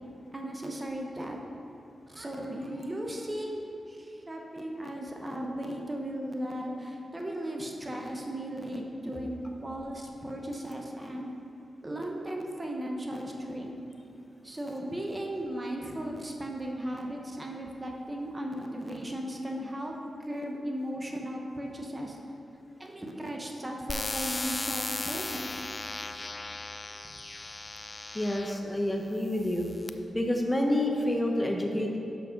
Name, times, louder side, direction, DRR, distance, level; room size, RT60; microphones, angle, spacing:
voice 1, 0.3-1.4 2.1-3.6 3.9-11.3 11.8-13.8 14.4-22.2 22.8-25.6 27.0-27.1, right 1 dB, 25° right, 1 dB, 0.8 m, -36 dB
sound 1, 23.9-28.6 29.3-29.9, left 2 dB, 35° left, 0.4 m, -36 dB
voice 2, 28.1-29.7 30.1-32.0, left 1 dB, 15° left, 1 dB, 0.8 m, -28 dB
6.3 x 5.9 x 5.1 m, 2.8 s
cardioid pair, 60°, 0 cm